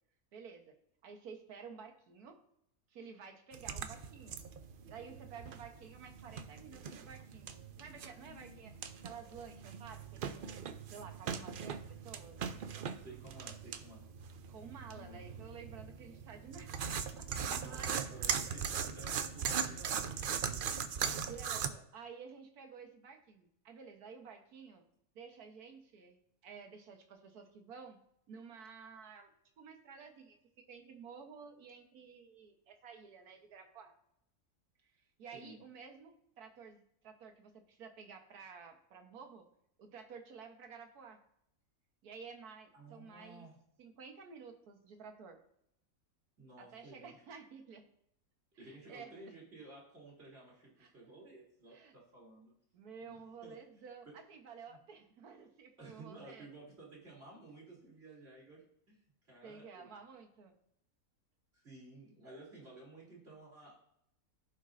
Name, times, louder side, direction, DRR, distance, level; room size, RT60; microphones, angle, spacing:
voice 1, 0.3-0.7 1.0-2.4 2.9-4.4 4.8-8.7 9.0-10.6 10.9-12.4 14.5-16.8 17.2-18.3 20.1-20.6 21.3-24.8 25.1-28.0 28.3-29.3 29.6-33.9 35.2-39.5 39.8-41.2 42.0-43.5 43.8-45.4 46.6-47.8 48.6-49.3 50.8-50.9 51.7-51.9 52.7-56.5 59.4-60.5, right 6 dB, 90° right, 5 dB, 1.6 m, -52 dB
sound 1, 3.5-21.7, right 7 dB, 70° right, 0.5 m, -40 dB
voice 2, 8.2-8.6 13.0-14.1 14.9-15.2 17.4-20.7 35.3-35.6 42.7-43.6 46.4-47.1 48.6-52.5 53.0-54.2 54.7-54.8 55.8-59.9 61.5-63.8, right 2 dB, 45° right, -4 dB, 3.1 m, -54 dB
15.5 x 5.3 x 2.5 m, 0.74 s
omnidirectional pair, 1.6 m